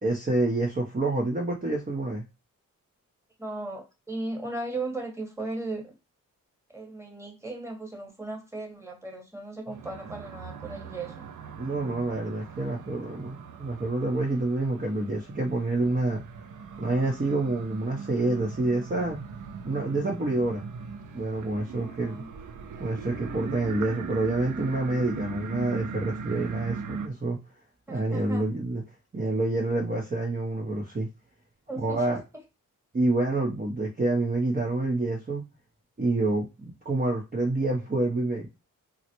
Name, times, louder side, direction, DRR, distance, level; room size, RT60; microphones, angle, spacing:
voice 1, 0.0-2.2 11.6-16.2 16.8-19.2 19.6-20.9 21.1-22.2 22.8-27.4 27.9-28.8 29.1-31.1 31.8-32.2 32.9-35.4 36.0-38.5, right 2 dB, 25° right, 0.8 m, -27 dB
voice 2, 3.4-5.9 6.7-11.1 21.8-22.3 27.9-28.4 31.7-32.2, right 2 dB, 10° right, 1.3 m, -36 dB
sound 1, 9.7-27.1, right 5 dB, 60° right, 0.5 m, -40 dB
3.9 x 2.1 x 2.9 m
cardioid pair, 65°, 34 cm